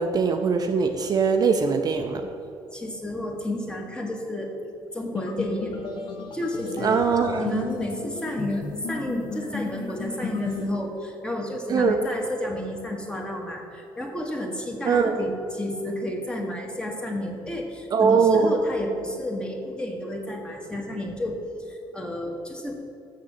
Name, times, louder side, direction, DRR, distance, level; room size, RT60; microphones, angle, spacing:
voice 1, 0.0-2.3 6.8-7.4 11.7-12.0 14.8-15.2 17.9-18.5, right 5 dB, 40° right, 5 dB, 0.6 m, -21 dB
voice 2, 2.7-4.5 4.9-5.7 6.3-7.0 7.4-21.4 21.7-22.7, left 1 dB, 10° left, 1 dB, 1.4 m, -31 dB
sound 1, 5.1-10.7, left 4 dB, 55° left, 1.2 m, -34 dB
6.7 x 6.6 x 7.2 m, 2.6 s
cardioid pair, 115°, 10 cm